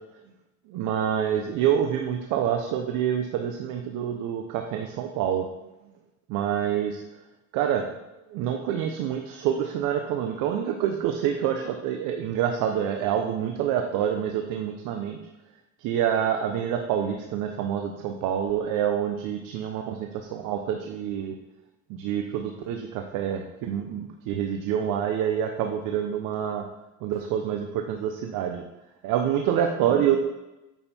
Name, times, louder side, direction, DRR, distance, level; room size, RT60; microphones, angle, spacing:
voice 1, 0.7-5.5 6.3-7.0 7.5-8.0 8.3-15.2 15.8-21.4 21.9-26.6 27.0-28.6 29.0-30.2, right 9 dB, 75° right, 4 dB, 1.0 m, -27 dB
9.1 x 6.7 x 4.4 m, 0.98 s
cardioid pair, 115°, 32 cm